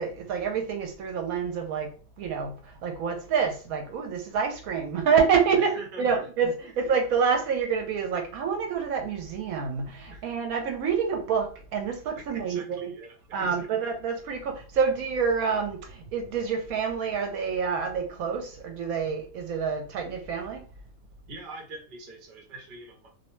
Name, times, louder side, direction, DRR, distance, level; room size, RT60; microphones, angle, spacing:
voice 1, 0.0-1.9 2.2-12.9 13.3-20.7, right 6 dB, 75° right, 1.0 m, -27 dB
voice 2, 5.5-6.2 6.6-6.7 10.1-10.3 12.2-13.7 21.3-23.1, right 3 dB, 45° right, 0.8 m, -43 dB
2.6 x 2.1 x 3.0 m
omnidirectional pair, 1.5 m